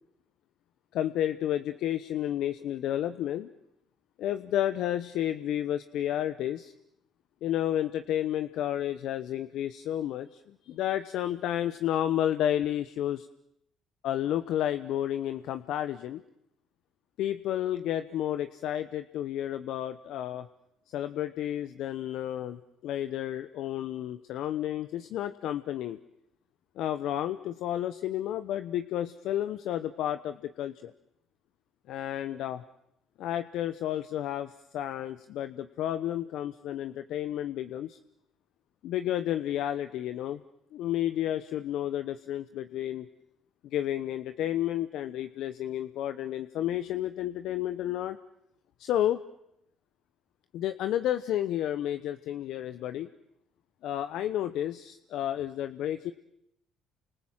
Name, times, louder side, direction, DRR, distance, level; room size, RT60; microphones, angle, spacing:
voice 1, 0.9-3.5 4.2-6.7 7.4-13.3 14.0-16.2 17.2-20.5 20.9-26.0 26.8-30.9 31.9-32.6 33.2-38.0 38.8-40.4 40.7-43.1 43.7-48.2 48.8-49.2 50.5-53.1 53.8-56.1, left 11 dB, 70° left, 11 dB, 1.0 m, -31 dB
29.5 x 26.0 x 7.5 m, 0.79 s
supercardioid pair, 70°, 0 cm